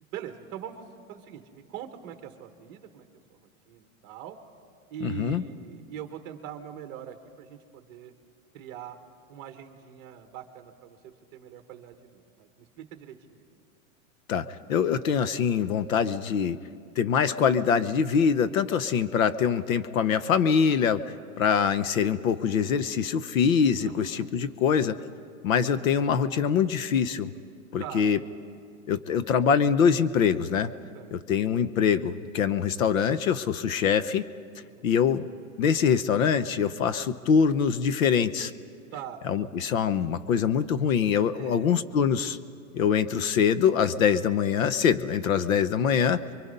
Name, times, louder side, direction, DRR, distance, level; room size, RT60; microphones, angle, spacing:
voice 1, 0.1-3.4 3.7-4.4 4.9-8.1 8.5-9.0 9.3-13.5 23.8-24.3 27.8-28.1 30.9-31.2 34.6-35.0 38.9-39.6 41.3-41.7 43.4-43.5, right 9 dB, 25° right, 7 dB, 1.3 m, -42 dB
voice 2, 5.0-5.4 14.3-16.6 17.0-21.0 21.4-25.0 25.4-27.3 27.7-28.2 28.9-30.7 31.1-34.3 34.8-35.3 35.6-38.5 39.3-42.4 42.7-46.2, left 7 dB, 65° left, 14 dB, 0.9 m, -24 dB
28.5 x 23.5 x 5.5 m, 2.3 s
supercardioid pair, 170°, 43 cm